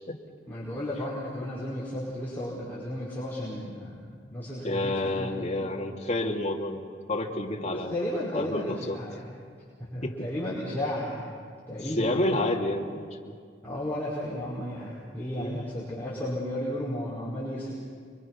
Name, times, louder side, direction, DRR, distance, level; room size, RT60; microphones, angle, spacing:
voice 1, 0.5-5.8 7.7-9.4 9.8-11.4 11.7-12.3 13.6-17.7, left 1 dB, 10° left, -9 dB, 5.2 m, -34 dB
voice 2, 4.6-7.9 8.3-9.0 10.0-10.3 12.0-13.3 15.4-15.6, left 1 dB, 40° left, -1 dB, 2.7 m, -29 dB
29.5 x 23.5 x 6.1 m, 2.1 s
head